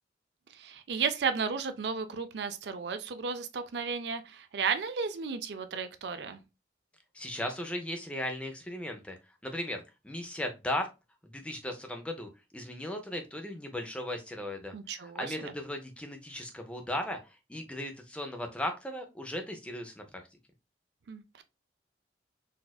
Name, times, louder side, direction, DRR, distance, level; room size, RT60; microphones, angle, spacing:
voice 1, 0.5-6.4 14.7-15.5 21.1-21.4, right 5 dB, 75° right, 0.4 m, -34 dB
voice 2, 7.1-9.2 9.4-10.9 11.2-17.2 17.5-20.0, left 1 dB, 5° left, 0.5 m, -37 dB
4.1 x 2.4 x 2.2 m
head